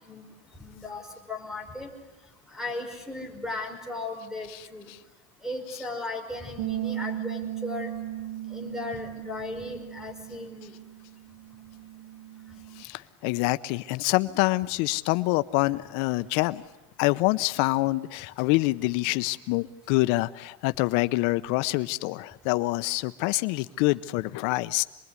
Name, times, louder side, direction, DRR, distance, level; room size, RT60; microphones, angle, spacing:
voice 1, 0.6-1.0 1.3-1.9 2.5-4.9 5.4-7.9 8.5-10.7, left 2 dB, ahead, 5 dB, 5.4 m, -36 dB
voice 2, 4.5-5.0 5.7-5.9 12.8-16.6 17.0-24.8, left 21 dB, 75° left, 13 dB, 0.9 m, -26 dB
sound 1, 6.6-12.8, right 13 dB, 55° right, 2.3 m, -37 dB
27.0 x 21.5 x 9.7 m, 1.1 s
cardioid pair, 155°, 30 cm